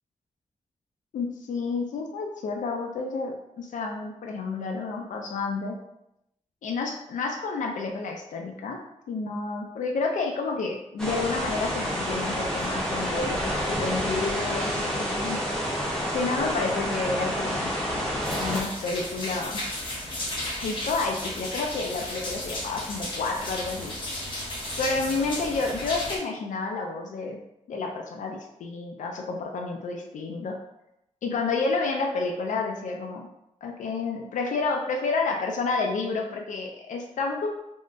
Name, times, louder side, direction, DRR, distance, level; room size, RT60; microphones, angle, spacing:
voice 1, 1.1-5.8 6.6-8.8 9.1-13.5 13.8-15.4 15.7-17.7 18.3-19.6 20.5-23.9 24.8-27.4 27.7-30.6 31.2-33.3 33.6-37.5, left 3 dB, 85° left, 2 dB, 0.4 m, -30 dB
sound 1, 11.0-18.6, equal, 5° left, 0.6 m, -29 dB
sound 2, 18.2-26.2, left 1 dB, 45° left, 0.7 m, -34 dB
3.5 x 2.1 x 2.5 m, 0.85 s
wide cardioid pair, 170°, 13 cm